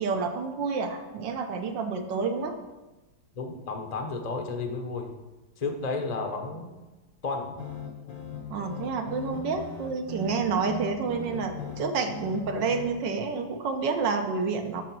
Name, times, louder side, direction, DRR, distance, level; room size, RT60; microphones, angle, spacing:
voice 1, 0.0-2.6 8.5-14.8, right 4 dB, 80° right, 6 dB, 1.6 m, -29 dB
voice 2, 3.3-5.1 5.6-6.7 7.2-7.5, left 4 dB, 40° left, 4 dB, 0.6 m, -32 dB
sound 1, 7.5-12.9, left 5 dB, 85° left, 1.9 m, -39 dB
11.5 x 4.0 x 6.1 m, 1.1 s
omnidirectional pair, 2.0 m